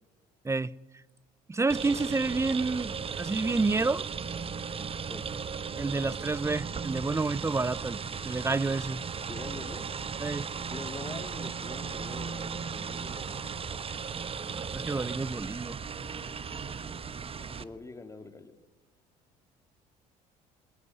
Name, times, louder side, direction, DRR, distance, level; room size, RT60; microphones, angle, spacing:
voice 1, 1.5-4.1 5.8-8.0 8.2-9.0 10.2-10.5 14.6-15.8, right 3 dB, 15° right, 0.7 m, -29 dB
sound 1, 1.7-17.6, right 6 dB, 35° right, 1.2 m, -36 dB
voice 2, 9.3-9.8 10.7-13.5 17.3-18.5, left 3 dB, 20° left, 3.2 m, -44 dB
21.5 x 18.0 x 9.8 m
supercardioid pair, 75°, 17 cm